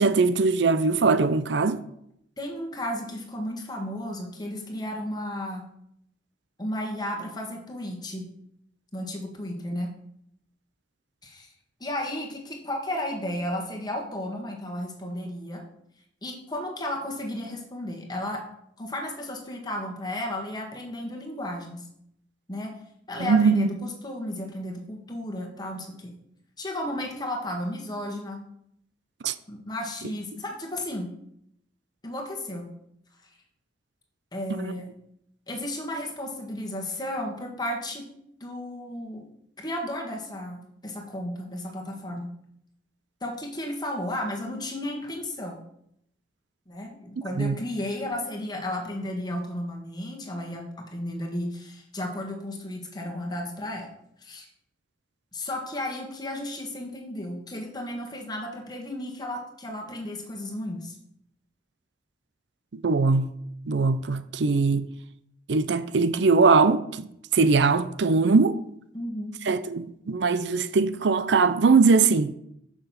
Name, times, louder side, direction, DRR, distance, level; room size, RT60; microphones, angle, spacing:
voice 1, 0.0-1.8 23.2-23.7 29.2-29.3 34.5-34.7 47.4-47.6 62.7-63.3 63.7-64.9 65.5-67.1 67.3-68.6 69.5-72.3, right 4 dB, 65° right, 0.5 m, -21 dB
voice 2, 2.4-5.6 6.6-8.3 8.9-9.9 11.2-11.5 11.8-15.6 16.2-18.4 18.8-21.9 22.5-22.8 23.1-26.1 26.6-28.4 29.5-31.1 32.0-32.7 34.3-34.9 35.5-38.1 38.4-39.3 39.6-42.3 43.2-45.6 46.7-53.9 54.2-54.5 55.3-60.9 68.9-69.3, left 1 dB, 20° left, 1.7 m, -33 dB
6.7 x 6.0 x 7.0 m
head